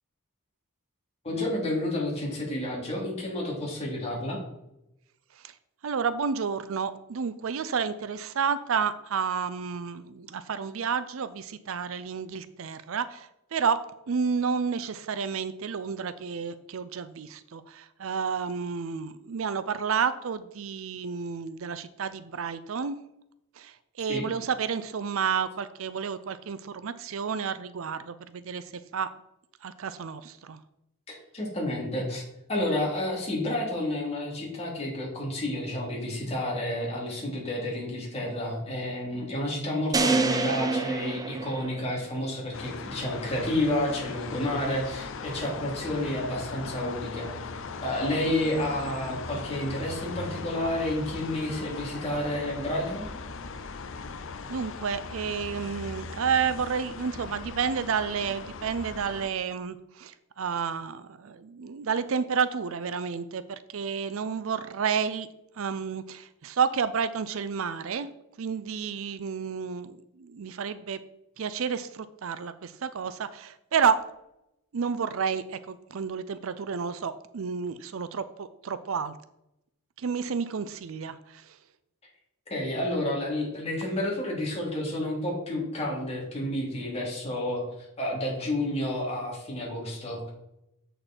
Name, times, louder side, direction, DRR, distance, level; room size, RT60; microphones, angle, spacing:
voice 1, 1.2-4.4 24.1-24.2 31.1-32.2 32.5-47.3 47.8-53.1 82.5-90.3, left 1 dB, 30° left, -3 dB, 2.8 m, -30 dB
voice 2, 5.8-13.8 14.1-23.0 23.6-28.6 28.9-29.1 29.6-30.6 54.5-65.3 65.6-68.1 68.4-71.0 71.4-74.0 74.7-79.1 80.0-81.6 83.9-84.0, right 6 dB, 65° right, 14 dB, 0.5 m, -30 dB
sound 1, 39.9-42.2, right 3 dB, 15° right, 0.6 m, -27 dB
sound 2, 42.5-59.3, left 4 dB, 60° left, 0.6 m, -39 dB
7.8 x 6.6 x 4.3 m, 0.84 s
head